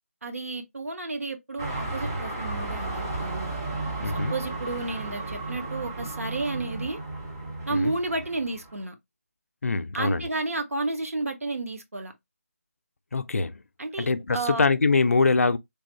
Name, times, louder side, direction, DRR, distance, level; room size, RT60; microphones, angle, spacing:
voice 1, 0.2-3.5 4.0-7.0 7.7-8.9 9.9-12.1 13.8-14.1 14.3-14.7, right 2 dB, 65° right, 0.9 m, -31 dB
sound 1, 1.6-8.8, right 2 dB, 15° right, 0.4 m, -34 dB
voice 2, 4.0-4.3 7.7-7.9 9.6-10.3 13.1-13.6 14.0-15.6, left 4 dB, 65° left, 0.4 m, -23 dB
3.3 x 2.3 x 2.7 m
figure-of-eight pair, 160°, 8 cm